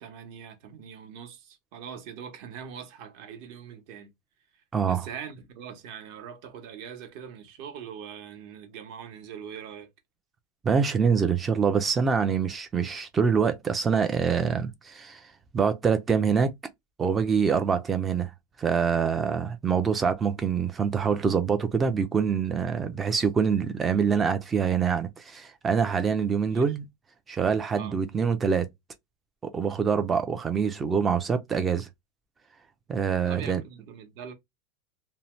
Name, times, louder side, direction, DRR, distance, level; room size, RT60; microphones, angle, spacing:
voice 1, 0.0-4.1 4.9-9.9 26.5-26.7 27.7-28.0 33.2-34.3, right 8 dB, 50° right, 0.8 m, -42 dB
voice 2, 4.7-5.1 10.6-15.2 15.5-16.5 17.0-18.3 18.6-26.8 27.3-28.7 29.4-31.9 32.9-33.6, right 6 dB, 15° right, 0.4 m, -25 dB
2.7 x 2.1 x 3.0 m
supercardioid pair, 165°, 0 cm